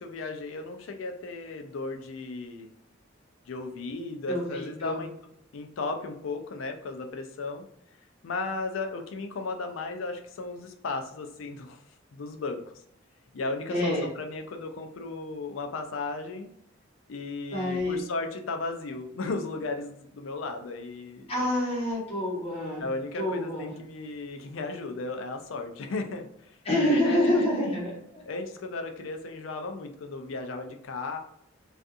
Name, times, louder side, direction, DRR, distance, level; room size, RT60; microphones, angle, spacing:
voice 1, 0.0-2.7 3.5-5.1 5.5-7.6 8.2-11.8 12.1-12.6 13.3-16.5 17.1-21.3 22.8-27.2 27.5-27.8 28.2-31.2, left 3 dB, 80° left, 5 dB, 0.4 m, -35 dB
voice 2, 4.3-5.0 13.7-14.1 17.5-18.0 21.3-22.8 23.2-23.7 26.6-28.2, left 1 dB, 30° left, -5 dB, 1.1 m, -27 dB
2.6 x 2.4 x 2.3 m, 0.74 s
head